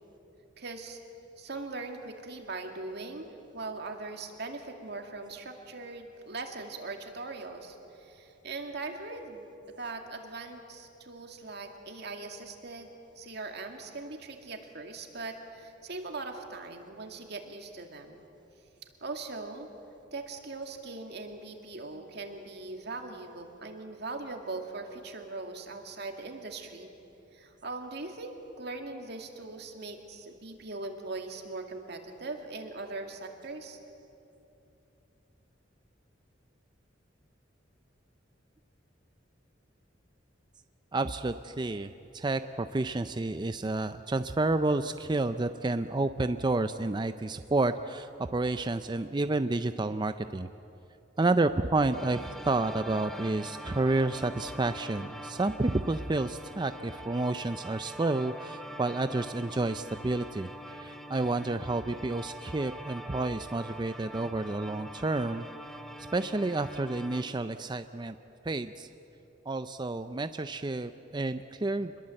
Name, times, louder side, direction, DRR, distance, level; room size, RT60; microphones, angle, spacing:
voice 1, 0.6-1.0 1.4-3.3 3.5-18.2 19.0-19.7 20.1-26.9 27.3-33.8, right 3 dB, 60° right, 4 dB, 2.3 m, -40 dB
voice 2, 40.9-50.5 51.2-65.5 66.1-68.2 68.4-68.9 69.5-72.0, right 2 dB, 25° right, 10 dB, 0.5 m, -30 dB
sound 1, 51.9-67.2, equal, ahead, 1.2 m, -44 dB
26.0 x 22.0 x 7.7 m, 2.9 s
head